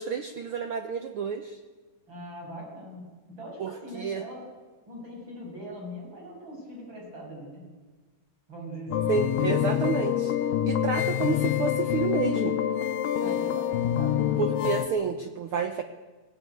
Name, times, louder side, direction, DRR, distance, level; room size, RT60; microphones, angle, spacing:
voice 1, 0.0-1.6 3.6-4.2 9.1-10.3 10.6-12.6 14.4-15.8, right 6 dB, 90° right, 7 dB, 1.1 m, -30 dB
voice 2, 2.1-4.5 4.9-7.6 8.5-9.1 13.2-14.4, equal, 35° right, -1 dB, 7.8 m, -41 dB
sound 1, 8.9-14.9, left 10 dB, 85° left, 2.7 m, -26 dB
19.0 x 17.5 x 9.3 m, 1.3 s
omnidirectional pair, 3.8 m